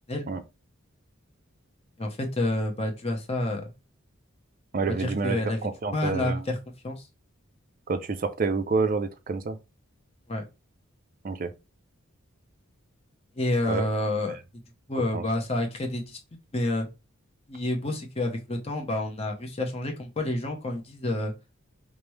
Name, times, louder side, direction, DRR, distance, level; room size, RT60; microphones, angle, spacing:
voice 1, 2.0-3.7 4.9-5.6 5.9-6.6 6.8-7.1 10.3-10.4 13.4-14.4 14.9-16.2 16.5-16.9 17.5-21.3, left 1 dB, 30° left, 0.8 m, -29 dB
voice 2, 4.7-6.4 7.9-9.6 11.2-11.5 13.7-13.8 15.1-15.2, right 4 dB, 40° right, 0.4 m, -28 dB
5.0 x 2.1 x 3.1 m
head